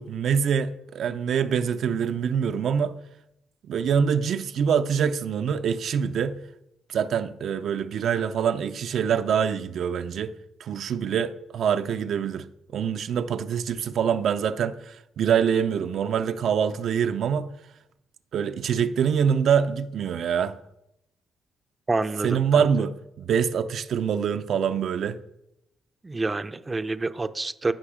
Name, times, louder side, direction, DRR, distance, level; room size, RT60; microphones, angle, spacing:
voice 1, 0.0-2.9 3.7-6.4 6.9-10.3 10.6-12.5 12.7-17.5 18.3-20.5 22.2-25.2, right 7 dB, 65° right, 0.5 m, -25 dB
voice 2, 21.9-22.6 26.0-27.7, right 3 dB, 25° right, 0.6 m, -28 dB
15.0 x 5.5 x 5.0 m
cardioid pair, 90°, 0 cm